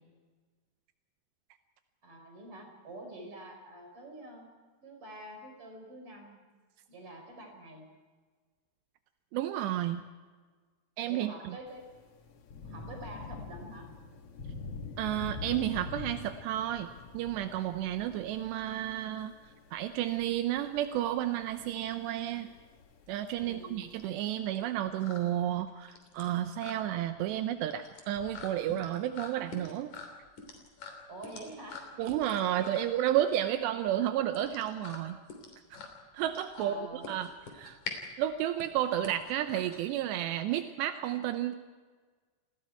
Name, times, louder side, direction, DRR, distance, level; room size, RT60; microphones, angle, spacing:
voice 1, 2.0-4.5 4.8-6.4 6.9-7.8 11.1-11.9 12.6-13.9 23.4-24.0 31.1-31.9 32.6-33.0 36.5-37.1, right 1 dB, 30° right, 2 dB, 5.7 m, -47 dB
voice 2, 9.3-10.0 11.0-11.6 15.0-16.9 17.1-19.3 19.7-22.5 23.1-29.9 32.0-35.2 35.7-35.8 36.1-37.3 37.5-37.8 38.2-41.6, right 12 dB, 85° right, 8 dB, 3.0 m, -31 dB
Thunder / Rain, 11.7-24.1, left 4 dB, 65° left, 1.5 m, -46 dB
sound 1, 22.6-40.3, left 4 dB, 45° left, 4.2 m, -47 dB
29.0 x 20.0 x 4.7 m, 1.4 s
omnidirectional pair, 4.9 m